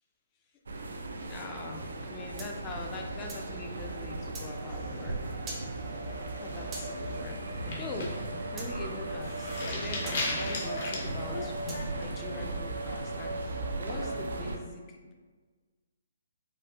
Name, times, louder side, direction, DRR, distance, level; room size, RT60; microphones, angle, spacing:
sound 1, 0.7-14.6, right 2 dB, 70° right, 0.4 m, -37 dB
voice 1, 1.2-5.2 5.4-5.9 6.4-11.5 11.9-15.1, left 3 dB, 25° left, 2 dB, 0.5 m, -43 dB
sound 2, 2.4-3.5 4.3-4.5 5.5-5.7 6.7-6.9 8.6-8.7 10.1-10.2 11.7-11.9, right 3 dB, 20° right, 0.6 m, -42 dB
sound 3, 4.7-5.5 5.9-6.2 6.6-6.9 7.5-11.8, left 2 dB, 55° left, 0.8 m, -37 dB
4.3 x 2.4 x 2.3 m, 1.4 s
figure-of-eight pair, 135°, 0 cm